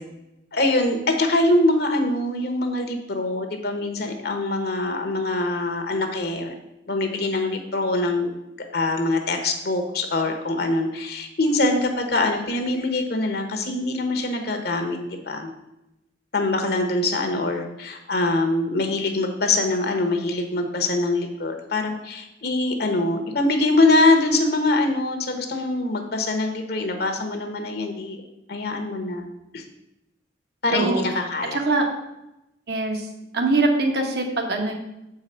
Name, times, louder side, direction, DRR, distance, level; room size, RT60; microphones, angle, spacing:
voice 1, 0.5-6.5 6.9-8.3 8.7-15.5 16.3-28.2 28.5-29.3 29.5-29.6 30.6-31.6, left 2 dB, 55° left, 5 dB, 1.0 m, -23 dB
voice 2, 30.7-31.0 31.7-31.8 32.7-33.0 33.3-34.7, right 2 dB, 55° right, 3 dB, 1.3 m, -22 dB
7.2 x 4.8 x 5.7 m, 0.91 s
head